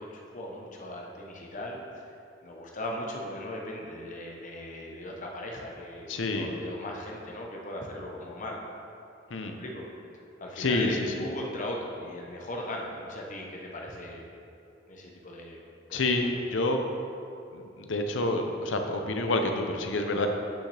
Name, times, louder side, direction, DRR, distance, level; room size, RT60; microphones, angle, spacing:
voice 1, 0.0-2.1 2.4-8.6 9.4-9.8 10.4-14.3 14.9-16.0 16.3-16.4, left 1 dB, 45° left, -1 dB, 1.0 m, -38 dB
voice 2, 6.1-6.6 9.3-9.6 10.6-11.1 15.9-16.8 17.5-20.3, left 2 dB, 85° left, 4 dB, 0.7 m, -28 dB
8.8 x 5.8 x 3.4 m, 2.6 s
head